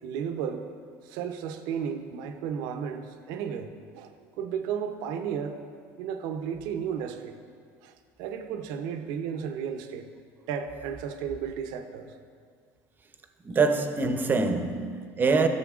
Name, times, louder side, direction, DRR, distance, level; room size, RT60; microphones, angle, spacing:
voice 1, 0.0-0.7 1.0-5.6 6.0-7.4 7.8-7.9 8.2-10.1 10.5-12.1, right 7 dB, 75° right, 0.7 m, -33 dB
voice 2, 13.5-15.5, right 4 dB, 25° right, 0.7 m, -24 dB
13.5 x 6.7 x 2.4 m
supercardioid pair, 105°, 7 cm